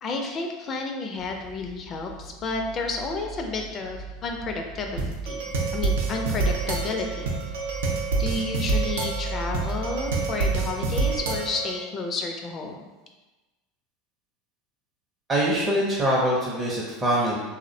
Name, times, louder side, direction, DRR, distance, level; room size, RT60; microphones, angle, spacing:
voice 1, 0.0-5.4 5.7-7.3 8.2-12.8, left 3 dB, 35° left, 3 dB, 0.3 m, -31 dB
sound 1, 1.2-10.8, right 2 dB, 75° left, 0.6 m, -38 dB
sound 2, 5.0-11.8, right 4 dB, 85° right, 0.4 m, -27 dB
voice 2, 15.3-17.4, right 1 dB, 20° right, -5 dB, 0.5 m, -23 dB
2.4 x 2.0 x 2.6 m, 1.1 s
supercardioid pair, 110°, 0 cm